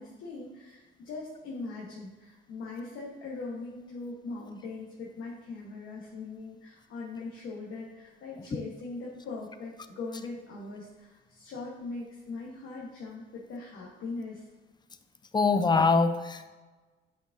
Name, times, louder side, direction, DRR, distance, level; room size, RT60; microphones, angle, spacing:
voice 1, 0.0-14.4, left 3 dB, 80° left, -3 dB, 1.1 m, -40 dB
voice 2, 15.3-16.5, left 4 dB, 20° left, 10 dB, 0.4 m, -23 dB
8.0 x 4.7 x 2.6 m, 1.3 s
cardioid pair, 90°, 20 cm